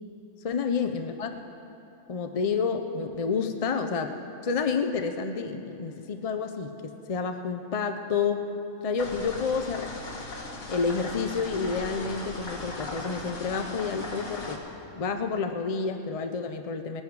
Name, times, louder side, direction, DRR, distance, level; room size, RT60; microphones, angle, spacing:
voice 1, 0.4-1.3 2.1-8.4 8.8-9.9 10.7-14.6 14.9-17.0, left 5 dB, 55° left, 6 dB, 0.4 m, -29 dB
sound 1, 9.0-14.6, left 2 dB, 75° left, 1.9 m, -38 dB
19.5 x 11.0 x 4.7 m, 3.0 s
omnidirectional pair, 1.4 m